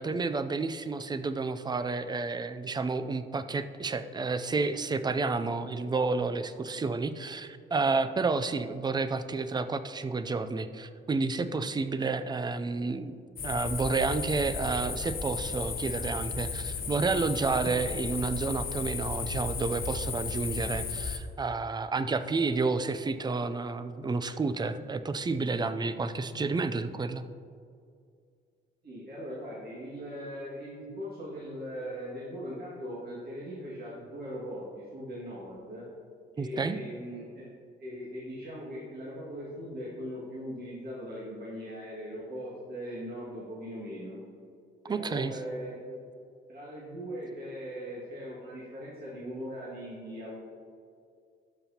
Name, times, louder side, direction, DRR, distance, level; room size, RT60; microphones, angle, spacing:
voice 1, 0.0-13.2 13.4-27.2 36.4-36.8 44.9-45.4, right 3 dB, 20° right, 11 dB, 0.4 m, -30 dB
sound 1, 13.4-21.2, left 5 dB, 45° left, 0.8 m, -34 dB
voice 2, 28.8-35.8 36.4-37.5 37.8-44.2 44.9-46.0 46.5-50.3, equal, 50° right, -8 dB, 2.1 m, -40 dB
12.5 x 5.9 x 2.9 m, 2.3 s
cardioid pair, 90°, 20 cm